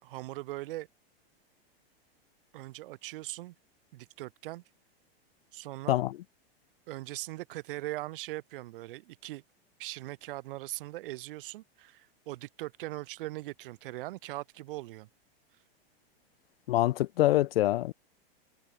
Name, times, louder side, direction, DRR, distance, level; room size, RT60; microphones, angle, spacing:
voice 1, 0.0-0.9 2.5-3.5 3.9-4.6 5.5-6.0 6.9-9.4 9.8-15.1, right 17 dB, 60° right, 3.5 m, -40 dB
voice 2, 16.7-17.9, left 15 dB, 70° left, 2.1 m, -25 dB
supercardioid pair, 155°, 31 cm